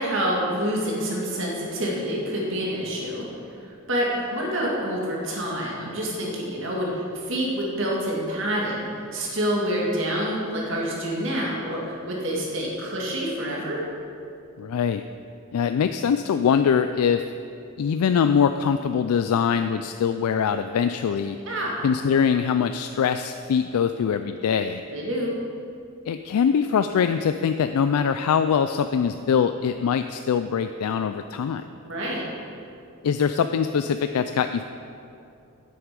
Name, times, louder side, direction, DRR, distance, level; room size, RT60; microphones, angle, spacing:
voice 1, 0.0-3.3 3.6-13.9 21.5-21.8 24.9-25.3 31.8-32.2, equal, 55° right, -3 dB, 2.1 m, -27 dB
voice 2, 14.6-15.0 15.5-17.2 17.8-21.4 21.8-24.8 26.1-31.7 33.0-34.6, left 7 dB, 90° left, 9 dB, 0.3 m, -23 dB
9.7 x 7.8 x 5.3 m, 2.6 s
head